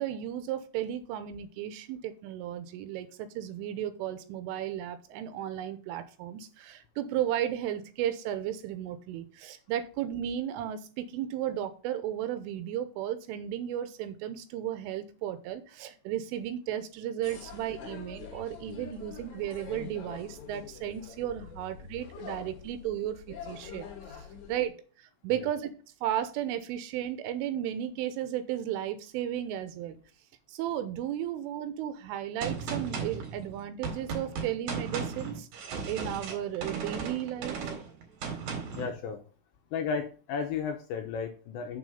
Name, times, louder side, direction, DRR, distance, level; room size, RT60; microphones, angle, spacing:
voice 1, 0.0-23.9 24.5-25.7 26.0-30.0 30.5-35.5 35.9-37.6, right 11 dB, 85° right, 10 dB, 3.2 m, -34 dB
sound 1, 17.2-24.7, left 7 dB, 50° left, 2.5 m, -45 dB
Gunshot gunfire, 32.4-38.9, right 5 dB, 55° right, 3.1 m, -36 dB
voice 2, 38.8-39.2 39.7-41.8, left 6 dB, 80° left, 5 dB, 2.7 m, -33 dB
7.0 x 6.3 x 5.4 m, 0.38 s
omnidirectional pair, 5.9 m